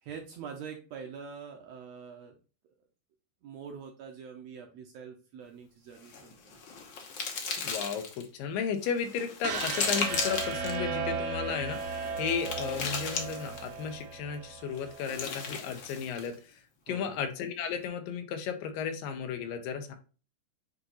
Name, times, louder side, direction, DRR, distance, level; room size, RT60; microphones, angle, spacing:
voice 1, 0.0-2.4 3.4-6.6 16.8-17.2, right 6 dB, 70° right, 2 dB, 1.7 m, -45 dB
sound 1, 6.0-8.3 8.8-10.8 11.6-13.8 14.8-16.3, left 5 dB, 70° left, 1.1 m, -36 dB
voice 2, 7.6-20.0, left 7 dB, 85° left, 7 dB, 2.6 m, -34 dB
sound 2, 9.4-15.5, right 5 dB, 85° right, 2.6 m, -36 dB
8.2 x 2.9 x 3.9 m, 0.35 s
omnidirectional pair, 3.8 m